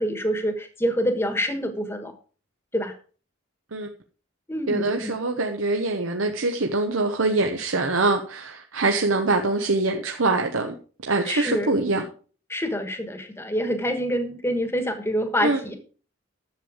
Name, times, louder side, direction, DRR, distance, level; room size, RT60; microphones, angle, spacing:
voice 1, 0.0-2.2 2.7-2.9 4.5-5.2 11.2-11.8 12.5-15.7, equal, 10° left, 1.3 m, -26 dB
voice 2, 4.7-10.7 11.1-12.1 15.4-15.6, right 3 dB, 80° right, 1.0 m, -24 dB
11.0 x 7.3 x 5.0 m
head